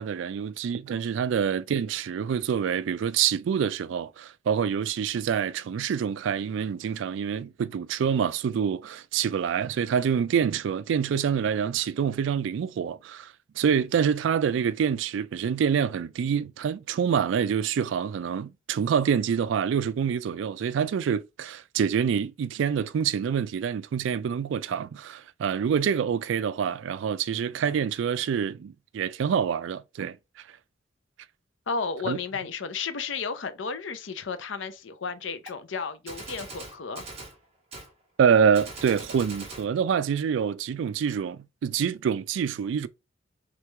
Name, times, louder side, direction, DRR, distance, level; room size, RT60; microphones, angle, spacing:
voice 1, 0.0-30.2 32.1-32.2 38.2-42.9, right 7 dB, 70° right, 0.3 m, -26 dB
voice 2, 31.7-37.0, left 5 dB, 70° left, 0.6 m, -33 dB
Gunshot gunfire, 35.5-35.6 36.1-37.4 37.7-37.9 38.5-39.7, right 2 dB, 35° right, 1.3 m, -41 dB
3.3 x 3.1 x 3.3 m
head